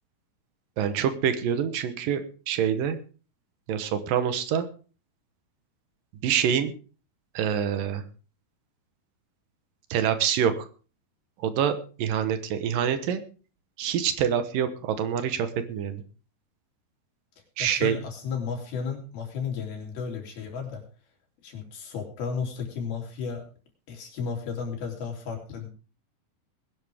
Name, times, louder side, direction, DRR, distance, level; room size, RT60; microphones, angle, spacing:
voice 1, 0.8-3.0 3.7-4.7 6.2-6.7 7.3-8.0 9.9-10.7 11.4-13.2 13.8-16.0 17.6-18.0, right 8 dB, 70° right, 10 dB, 2.7 m, -26 dB
voice 2, 17.6-20.8 21.4-23.4 23.9-25.7, left 6 dB, 90° left, 1 dB, 5.3 m, -33 dB
20.5 x 10.5 x 3.5 m, 0.36 s
omnidirectional pair, 4.2 m